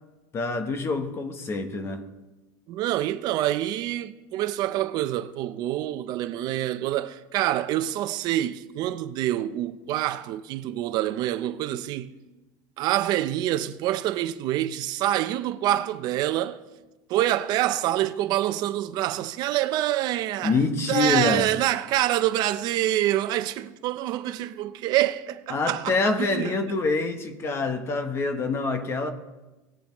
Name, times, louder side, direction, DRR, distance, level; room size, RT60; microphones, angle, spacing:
voice 1, 0.3-2.0 20.4-21.5 25.5-29.1, left 3 dB, 30° left, 1.0 m, -26 dB
voice 2, 2.7-12.1 12.8-16.6 17.1-20.6 20.9-26.5, right 13 dB, 55° right, 0.6 m, -26 dB
18.5 x 7.3 x 3.1 m
cardioid pair, 135°, 9 cm